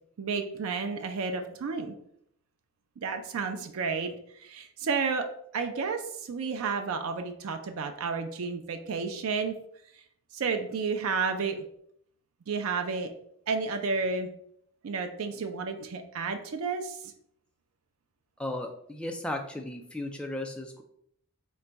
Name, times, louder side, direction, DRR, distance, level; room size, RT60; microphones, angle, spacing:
voice 1, 0.2-1.9 3.0-5.3 5.5-9.6 10.3-11.6 12.5-13.1 13.5-14.3 14.8-17.1, right 4 dB, 75° right, 6 dB, 0.4 m, -31 dB
voice 2, 18.4-20.8, left 1 dB, 5° left, 3 dB, 0.3 m, -35 dB
3.9 x 2.2 x 4.4 m, 0.70 s
head